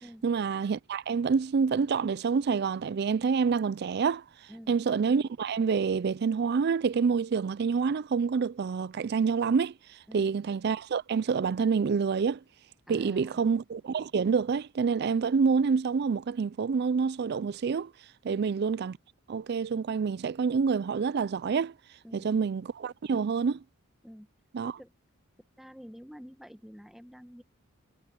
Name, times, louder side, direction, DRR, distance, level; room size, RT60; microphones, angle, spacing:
voice 1, 0.2-4.2 4.7-9.7 10.1-12.4 12.9-17.9 18.2-19.0 19.3-21.7 22.1-23.6 24.5-24.8, right 5 dB, 50° right, 0.4 m, -27 dB
voice 2, 12.9-13.4 18.3-18.5 22.0-22.5 24.0-24.3 24.6-24.9 25.6-27.4, equal, ahead, 1.1 m, -48 dB
head